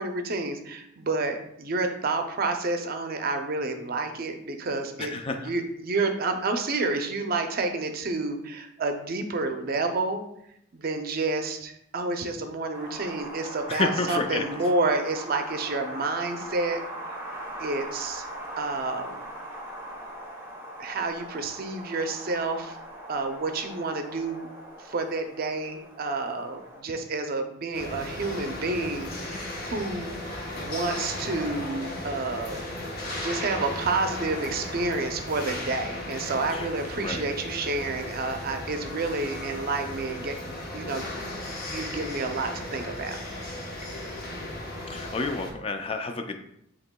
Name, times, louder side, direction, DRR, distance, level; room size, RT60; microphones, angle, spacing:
voice 1, 0.0-10.2 10.7-16.8 17.6-18.3 18.6-19.2 20.8-22.8 23.1-24.5 24.8-29.4 29.6-30.1 30.6-32.6 33.2-41.1 41.7-43.2, right 3 dB, 50° right, 6 dB, 0.5 m, -29 dB
voice 2, 5.0-5.5 13.7-14.5 36.5-36.7 37.0-37.2 44.9-46.4, left 3 dB, 30° left, 5 dB, 0.4 m, -30 dB
Wind, 12.7-26.8, right 1 dB, 10° right, 0.8 m, -40 dB
sound 1, 27.7-45.5, left 1 dB, 50° left, 1.0 m, -36 dB
7.8 x 2.9 x 2.2 m, 0.75 s
head